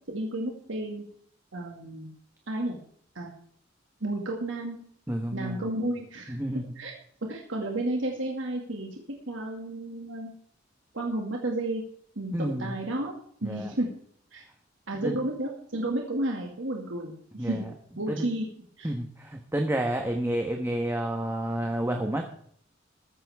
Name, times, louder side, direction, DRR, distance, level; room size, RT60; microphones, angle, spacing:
voice 1, 0.1-1.0 1.5-2.1 2.5-2.8 3.1-3.3 4.0-4.8 5.3-6.4 6.8-6.9 7.2-9.0 9.3-10.3 10.9-11.8 12.2-13.1 13.4-13.9 14.3-14.4 14.9-17.7 18.0-18.5 18.8-18.9, right 1 dB, 80° right, 0 dB, 2.3 m, -32 dB
voice 2, 5.1-5.7 6.3-6.7 12.3-12.7 13.4-13.7 15.0-15.2 17.4-17.6 18.1-18.3 18.8-22.2, right 1 dB, 15° right, 3 dB, 1.3 m, -30 dB
14.5 x 14.0 x 3.6 m, 0.62 s
head